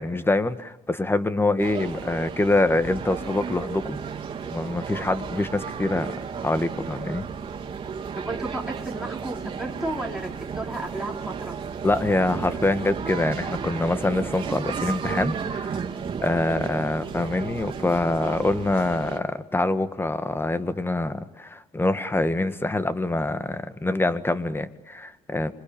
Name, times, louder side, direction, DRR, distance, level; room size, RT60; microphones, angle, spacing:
voice 1, 0.0-4.0 4.5-6.1 6.4-7.3 11.8-15.8 16.2-25.5, left 2 dB, 15° left, 12 dB, 1.7 m, -25 dB
sound 1, 1.6-19.2, right 6 dB, 35° right, 3.5 m, -33 dB
voice 2, 8.2-11.6, right 2 dB, 5° right, -1 dB, 4.6 m, -33 dB
27.0 x 23.5 x 8.9 m, 0.92 s
cardioid pair, 85°, 15 cm